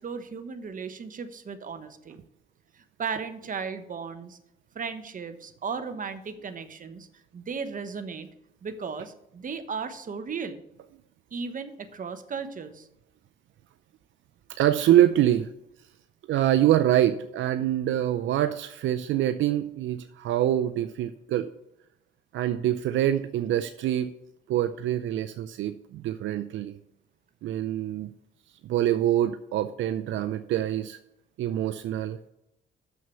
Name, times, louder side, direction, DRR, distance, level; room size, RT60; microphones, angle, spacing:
voice 1, 0.0-2.2 3.0-4.4 4.7-7.1 7.3-8.3 8.6-10.6 11.3-12.9, right 5 dB, 45° right, 9 dB, 1.1 m, -35 dB
voice 2, 14.5-15.5 16.3-21.5 22.3-24.1 24.5-26.8 27.4-28.1 28.6-31.0 31.4-32.2, right 12 dB, 75° right, 10 dB, 0.5 m, -25 dB
6.8 x 6.4 x 7.1 m, 0.84 s
cardioid pair, 90°, 20 cm